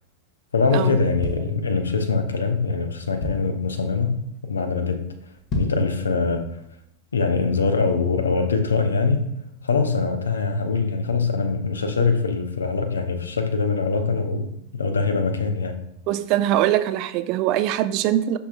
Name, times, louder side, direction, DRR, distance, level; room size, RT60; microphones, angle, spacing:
voice 1, 0.5-5.1 5.5-6.6 7.1-9.3 9.6-15.8, left 4 dB, 70° left, 0.6 m, -23 dB
sound 1, 1.2-2.2 2.7-2.8 2.9-3.7 4.2-4.4 4.7-4.8 5.3-6.0 6.4-6.5, left 2 dB, 35° left, 1.0 m, -31 dB
voice 2, 16.1-18.4, right 12 dB, 40° right, 0.3 m, -22 dB
6.8 x 5.8 x 2.4 m
figure-of-eight pair, 90°, 0 cm